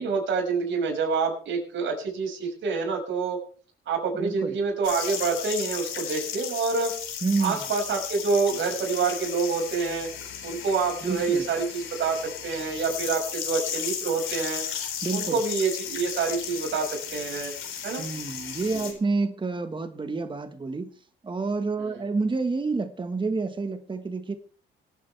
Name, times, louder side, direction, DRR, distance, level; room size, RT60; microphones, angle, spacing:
voice 1, 0.0-3.4 3.9-6.9 7.4-10.1 10.4-14.6 15.1-17.5 17.8-18.0 18.8-19.0 21.8-22.0, right 4 dB, 70° right, 1 dB, 6.1 m, -27 dB
voice 2, 4.2-4.5 7.2-7.6 11.0-11.4 15.0-15.4 18.0-20.9 21.2-24.4, right 3 dB, 25° right, 8 dB, 1.4 m, -28 dB
sound 1, 4.8-18.9, left 8 dB, 85° left, 4.0 m, -35 dB
24.5 x 8.9 x 3.4 m, 0.42 s
cardioid pair, 90°, 20 cm